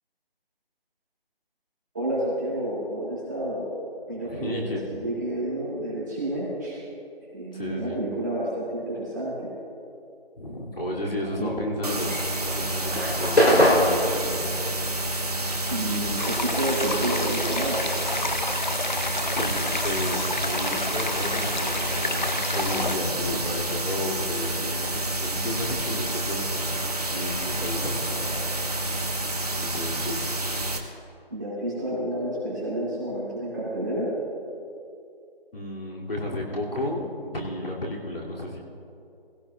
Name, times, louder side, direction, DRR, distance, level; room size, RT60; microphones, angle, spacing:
voice 1, 1.9-3.7 4.1-6.8 7.3-9.5 11.4-11.5 15.7-17.8 31.3-34.1, right 1 dB, 20° right, -9 dB, 2.5 m, -30 dB
voice 2, 4.3-5.0 7.5-8.0 10.4-14.4 19.4-26.8 27.1-28.5 29.6-30.3 35.5-38.6, left 1 dB, 65° left, -3 dB, 2.7 m, -33 dB
sound 1, 11.8-30.8, right 1 dB, 40° right, 0.9 m, -29 dB
sound 2, 11.9-16.7 16.9-18.9, equal, 80° left, 3.8 m, -24 dB
sound 3, 16.2-23.0, left 3 dB, 50° left, 0.5 m, -30 dB
18.0 x 16.5 x 2.4 m, 2.6 s
figure-of-eight pair, 170°, 31 cm